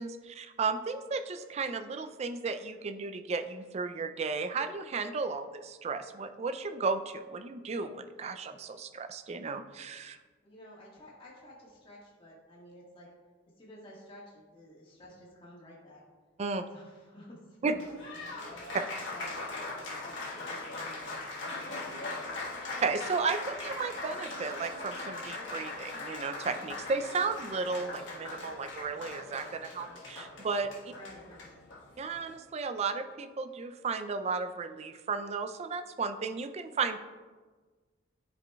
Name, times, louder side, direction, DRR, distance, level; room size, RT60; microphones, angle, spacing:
voice 1, 0.0-10.2 16.4-16.6 17.6-17.8 22.8-30.7 32.0-37.0, right 4 dB, 35° right, 9 dB, 0.3 m, -34 dB
voice 2, 10.4-13.1 13.6-16.0 16.7-18.8 19.1-22.3 30.9-31.5, left 1 dB, 25° left, -5 dB, 1.6 m, -52 dB
Applause, 17.6-32.4, left 2 dB, 70° left, 1.3 m, -40 dB
10.5 x 5.0 x 2.3 m, 1.4 s
head